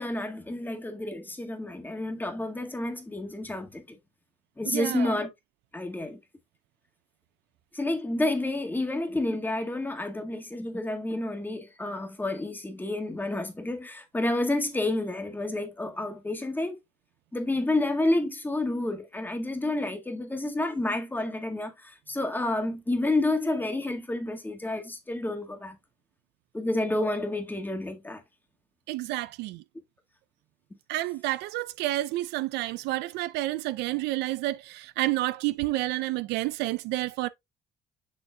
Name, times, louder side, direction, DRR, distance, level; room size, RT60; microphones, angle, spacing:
voice 1, 0.0-4.0 4.6-5.3 5.7-6.2 7.7-16.8 17.3-25.8 26.5-28.2, left 2 dB, 10° left, 1.7 m, -30 dB
voice 2, 4.7-5.2 28.9-29.6 30.9-37.3, right 17 dB, 85° right, 0.5 m, -30 dB
6.9 x 6.7 x 2.3 m
cardioid pair, 110°, 17 cm